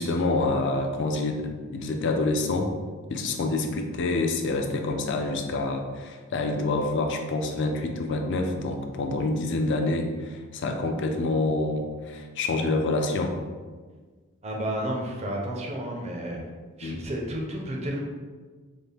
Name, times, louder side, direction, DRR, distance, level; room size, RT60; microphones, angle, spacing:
voice 1, 0.0-2.7 3.1-13.3 16.8-17.0, left 2 dB, 60° left, 4 dB, 0.4 m, -27 dB
voice 2, 14.4-16.4 16.8-18.0, right 1 dB, 30° right, -1 dB, 0.6 m, -31 dB
4.0 x 2.1 x 3.4 m, 1.5 s
head